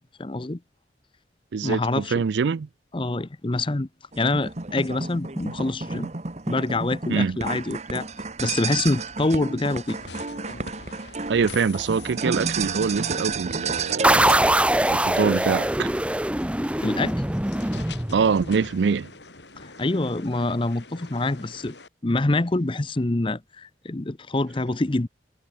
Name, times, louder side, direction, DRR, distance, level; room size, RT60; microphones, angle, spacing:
voice 1, 0.2-0.6 1.6-2.1 2.9-3.9 4.2-6.1 6.5-8.1 8.4-10.0 16.8-17.2 19.6-21.7 22.0-25.1, left 2 dB, 30° left, 0.7 m, -26 dB
voice 2, 1.5-2.7 7.1-7.4 11.3-14.5 14.9-15.9 18.1-19.1, right 5 dB, 85° right, 0.4 m, -24 dB
sound 1, 4.1-14.4, right 4 dB, 40° right, 1.3 m, -31 dB
sound 2, 9.9-21.9, left 4 dB, 80° left, 7.8 m, -46 dB
sound 3, 14.0-18.6, right 1 dB, 5° right, 0.9 m, -22 dB
head